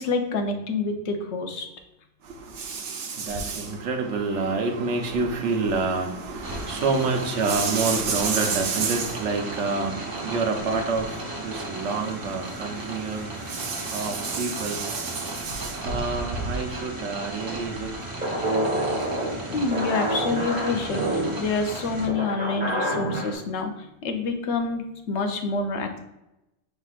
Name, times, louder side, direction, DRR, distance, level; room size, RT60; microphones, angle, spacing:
voice 1, 0.0-1.7 19.5-26.0, left 4 dB, 70° left, 0.9 m, -27 dB
voice 2, 2.7-11.0 11.4-13.3 13.6-15.1 15.6-17.9 18.6-18.8, right 4 dB, 75° right, 1.1 m, -27 dB
sound 1, 6.4-22.1, right 1 dB, 25° right, 0.5 m, -36 dB
sound 2, 18.2-23.3, right 1 dB, 5° right, 1.5 m, -27 dB
5.8 x 3.4 x 2.4 m
omnidirectional pair, 1.2 m